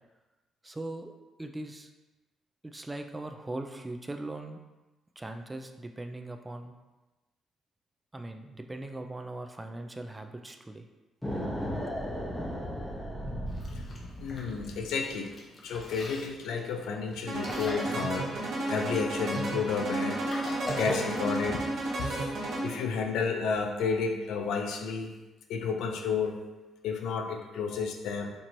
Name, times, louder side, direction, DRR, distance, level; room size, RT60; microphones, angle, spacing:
voice 1, 0.6-1.1 1.4-1.9 2.6-4.6 5.2-6.8 8.1-10.8, right 2 dB, 15° right, 5 dB, 0.3 m, -40 dB
sound 1, 11.2-14.9, equal, 10° left, 0.8 m, -36 dB
Chewing mastication, 13.5-21.4, left 1 dB, 40° left, 0.8 m, -41 dB
voice 2, 14.2-15.3 15.6-20.5 20.8-21.6 22.0-22.3 22.6-25.1 25.5-26.4 26.8-28.3, left 5 dB, 85° left, 4 dB, 0.4 m, -31 dB
sound 2, 17.3-22.9, right 2 dB, 70° right, 1.2 m, -32 dB
4.4 x 2.9 x 2.6 m, 1.1 s
cardioid pair, 90°, 0 cm